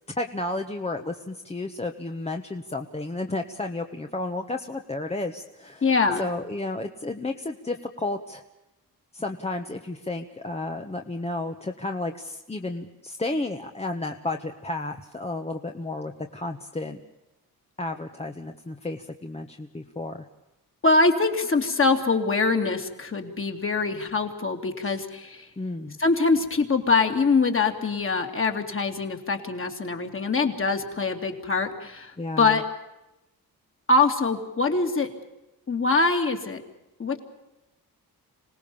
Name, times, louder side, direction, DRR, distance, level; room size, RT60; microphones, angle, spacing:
voice 1, 0.2-5.9 6.2-8.4 9.1-17.0 17.8-20.2 24.8-24.9 25.6-26.0 32.2-32.6, left 2 dB, 15° left, 4 dB, 1.3 m, -32 dB
voice 2, 5.8-6.3 20.8-25.5 26.0-32.6 33.9-35.1 35.7-36.6 37.0-37.2, left 3 dB, 35° left, 4 dB, 2.9 m, -23 dB
26.5 x 18.5 x 7.1 m, 0.95 s
cardioid pair, 110°, 36 cm